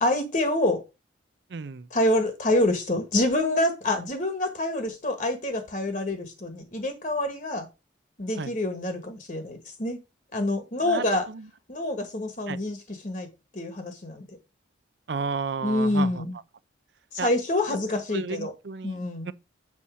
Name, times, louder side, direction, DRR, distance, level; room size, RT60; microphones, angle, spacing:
voice 1, 0.0-0.8 1.9-7.7 8.2-10.0 10.3-11.3 11.7-13.3 13.5-14.4 15.6-16.3 17.1-18.5 18.8-19.3, left 1 dB, 45° left, 1.4 m, -26 dB
voice 2, 1.5-1.9 8.4-8.5 10.8-11.5 12.5-12.6 15.1-16.2 17.2-17.3 18.1-19.3, right 5 dB, 65° right, 0.5 m, -33 dB
7.1 x 4.2 x 6.1 m
head